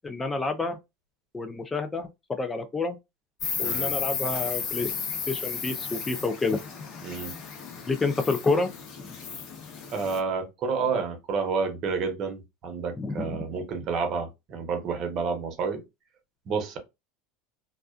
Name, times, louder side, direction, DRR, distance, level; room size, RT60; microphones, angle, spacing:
voice 1, 0.0-0.8 1.3-3.0 3.6-4.9 5.3-6.6 7.9-8.7 9.0-9.1 13.0-13.4, left 3 dB, 15° left, 0.3 m, -28 dB
Insect, 3.4-10.2, left 6 dB, 45° left, 1.0 m, -34 dB
voice 2, 7.0-7.4 9.9-15.8 16.5-16.8, right 5 dB, 45° right, 0.8 m, -30 dB
2.4 x 2.3 x 2.2 m
supercardioid pair, 125°, 0 cm